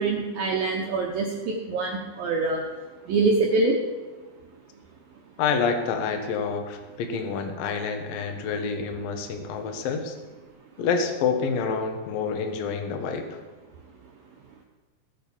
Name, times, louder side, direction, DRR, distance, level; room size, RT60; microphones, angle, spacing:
voice 1, 0.0-2.6 3.1-3.8, right 3 dB, 90° right, 0 dB, 2.0 m, -24 dB
voice 2, 5.4-10.1 10.8-13.2, left 5 dB, 75° left, 5 dB, 2.1 m, -27 dB
18.0 x 6.4 x 7.1 m, 1.3 s
omnidirectional pair, 5.9 m